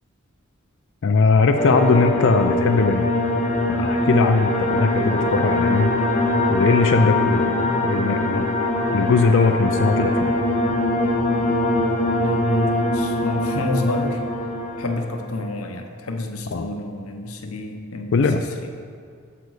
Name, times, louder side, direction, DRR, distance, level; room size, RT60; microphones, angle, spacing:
voice 1, 1.0-3.1 3.7-5.9 6.5-8.5 8.9-10.3 16.5-16.7 18.1-18.4, left 4 dB, 60° left, 6 dB, 0.4 m, -20 dB
sound 1, 1.5-15.5, left 1 dB, 35° left, 0.9 m, -22 dB
voice 2, 12.2-14.2 14.8-18.2 18.6-18.7, left 2 dB, 90° left, 4 dB, 0.8 m, -28 dB
8.0 x 6.8 x 4.8 m, 2.3 s
head